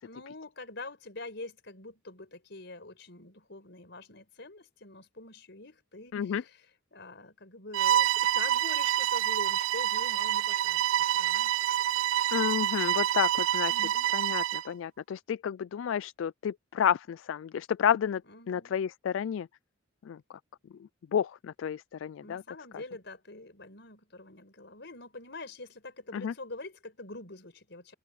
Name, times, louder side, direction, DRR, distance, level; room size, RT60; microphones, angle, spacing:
voice 1, 0.0-6.6 6.9-11.6 13.7-14.1 18.3-18.8 22.2-27.9, left 2 dB, 60° left, 5.3 m, -45 dB
voice 2, 6.1-6.4 12.3-13.9 14.1-18.2 18.5-19.5 20.0-20.4 20.8-22.4 22.7-22.8 26.1-26.3, left 8 dB, 75° left, 0.3 m, -31 dB
Bowed string instrument, 7.7-14.7, right 11 dB, 75° right, 0.3 m, -27 dB
head